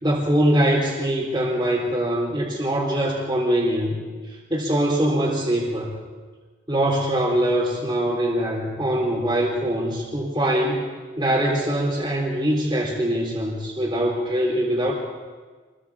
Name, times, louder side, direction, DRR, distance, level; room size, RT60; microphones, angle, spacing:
voice 1, 0.0-6.0 6.7-10.8 11.2-14.9, right 1 dB, 20° right, -7 dB, 3.6 m, -23 dB
28.0 x 22.0 x 4.9 m, 1.4 s
head